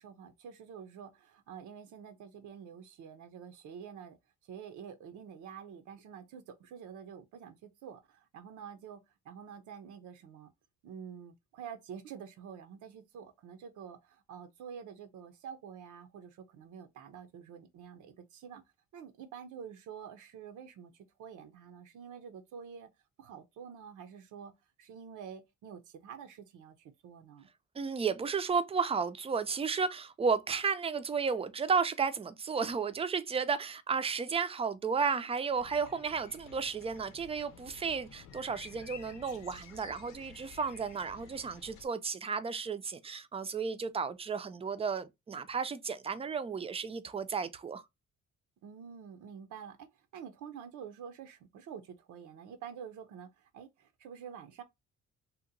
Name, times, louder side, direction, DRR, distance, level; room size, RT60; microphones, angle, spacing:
voice 1, 0.0-4.2 4.5-10.5 10.8-18.6 18.9-22.9 23.2-24.5 24.8-27.5 48.6-49.9 50.1-54.6, right 7 dB, 80° right, 0.6 m, -48 dB
voice 2, 27.8-47.8, right 5 dB, 20° right, 0.4 m, -33 dB
sound 1, 35.5-41.9, left 6 dB, 90° left, 0.7 m, -52 dB
2.8 x 2.1 x 3.7 m
cardioid pair, 90°, 30 cm